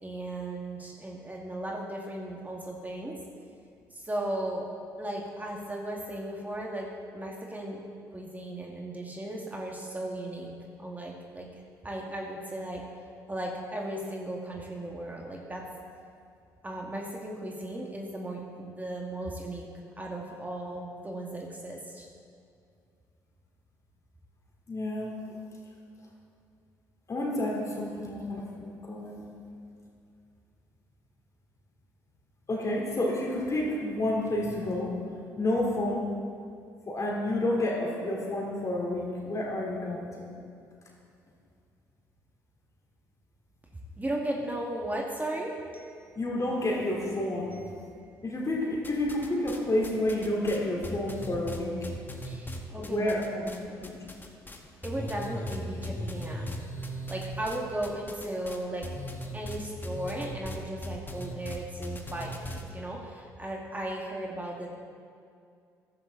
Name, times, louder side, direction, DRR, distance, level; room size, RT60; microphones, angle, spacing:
voice 1, 0.0-3.2 3.9-4.7 5.0-6.9 7.1-7.8 8.1-10.5 10.8-12.8 13.3-15.7 16.6-19.7 20.0-22.1 44.0-46.1 46.6-46.7 47.5-47.7 52.2-53.7 54.8-56.6 57.1-58.9 59.3-64.7, right 1 dB, 20° right, -1 dB, 2.1 m, -36 dB
voice 2, 24.7-25.1 27.1-29.2 32.5-34.9 35.4-36.1 36.9-40.3 46.2-47.5 48.2-51.7 52.8-53.5 53.8-53.9, left 1 dB, 40° left, -2 dB, 3.8 m, -30 dB
sound 1, 48.8-49.6 49.8-53.6 53.8-54.6 54.8-62.6, equal, 20° left, 1.7 m, -38 dB
14.5 x 11.0 x 4.1 m, 2.3 s
hypercardioid pair, 55°, 9 cm